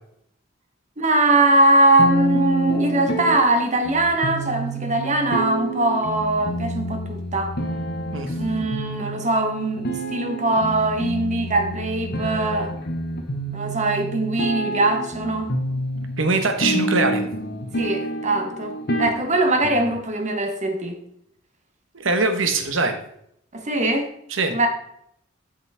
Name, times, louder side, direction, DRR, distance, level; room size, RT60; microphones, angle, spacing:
voice 1, 1.0-7.5 8.4-12.7 13.5-15.5 17.7-21.0 23.5-24.1 24.5-24.7, right 2 dB, 40° right, 5 dB, 1.2 m, -21 dB
sound 1, 2.0-20.0, right 1 dB, 55° left, 1.2 m, -28 dB
voice 2, 16.2-17.3 21.9-23.0 24.3-24.5, right 3 dB, 75° right, 6 dB, 1.2 m, -22 dB
7.9 x 7.2 x 3.5 m, 0.72 s
head